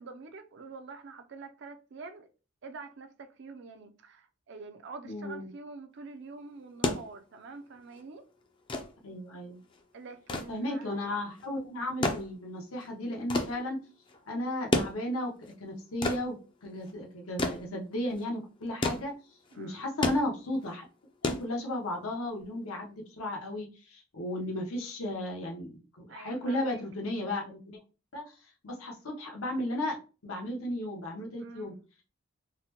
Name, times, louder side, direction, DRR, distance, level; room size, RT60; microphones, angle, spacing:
voice 1, 0.0-2.3 2.6-8.2 9.9-11.0 19.5-19.9 26.1-26.8 31.4-31.7, right 4 dB, 55° right, 0.4 m, -46 dB
voice 2, 5.0-5.5 9.0-9.6 10.5-13.8 14.3-16.4 16.6-19.1 19.6-20.8 21.2-27.8 28.1-28.2 28.6-30.0 30.2-31.8, left 1 dB, 85° left, 0.9 m, -34 dB
sound 1, 6.6-22.1 23.3-23.4, left 2 dB, 25° left, 0.4 m, -34 dB
4.0 x 2.1 x 2.9 m
head